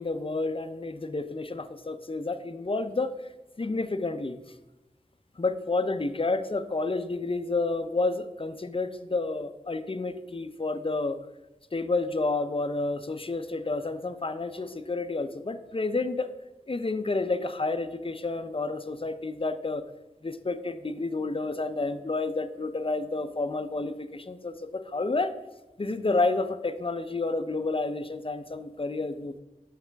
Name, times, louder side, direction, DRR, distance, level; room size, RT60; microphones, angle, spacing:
voice 1, 0.0-3.1 3.6-4.4 5.4-11.2 11.7-16.3 16.7-19.8 20.2-25.3 25.8-29.4, left 3 dB, 40° left, 9 dB, 0.6 m, -30 dB
13.5 x 5.0 x 3.4 m, 1.0 s
wide cardioid pair, 65°, 14 cm